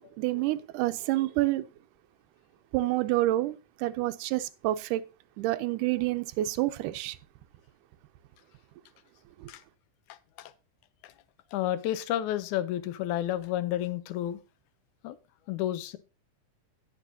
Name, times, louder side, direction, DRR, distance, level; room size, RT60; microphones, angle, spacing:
voice 1, 0.2-1.6 2.7-5.0 5.4-7.2 9.4-9.5, right 16 dB, 85° right, 2.1 m, -28 dB
voice 2, 10.1-10.5 11.0-11.1 11.5-14.4 15.0-15.2 15.5-16.0, left 12 dB, 80° left, 2.1 m, -31 dB
17.0 x 6.1 x 2.7 m
omnidirectional pair, 3.6 m